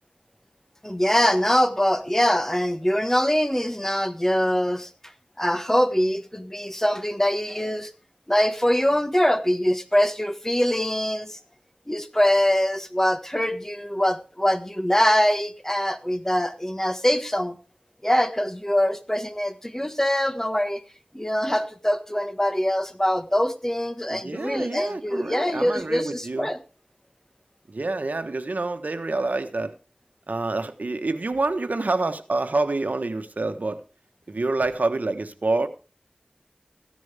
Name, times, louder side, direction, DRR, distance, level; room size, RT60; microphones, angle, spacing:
voice 1, 0.8-4.9 5.4-7.9 8.3-11.4 11.9-17.6 18.0-20.8 21.1-26.6, equal, 15° left, 1.5 m, -23 dB
voice 2, 24.1-26.5 27.7-29.7 30.3-33.8 34.3-35.7, right 2 dB, 80° right, 1.3 m, -27 dB
15.0 x 10.5 x 3.5 m
wide cardioid pair, 50°, 3 cm